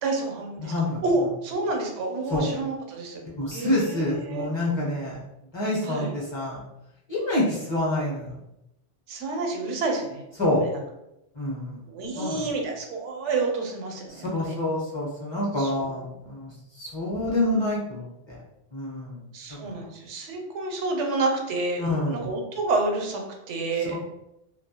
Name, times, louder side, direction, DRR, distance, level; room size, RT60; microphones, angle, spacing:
voice 1, 0.0-3.2 3.5-4.5 5.9-6.1 9.1-10.2 11.9-14.6 15.6-15.7 19.3-23.2 23.5-24.0, right 3 dB, 85° right, 2 dB, 0.9 m, -29 dB
voice 2, 0.6-1.0 2.3-2.5 3.4-5.2 5.5-6.6 7.1-8.3 10.4-10.6 11.4-11.8 12.2-12.5 14.1-18.4 18.7-19.2 21.8-22.2 23.8-24.0, left 1 dB, 30° left, -5 dB, 0.6 m, -27 dB
2.2 x 2.0 x 2.7 m, 0.86 s
omnidirectional pair, 1.2 m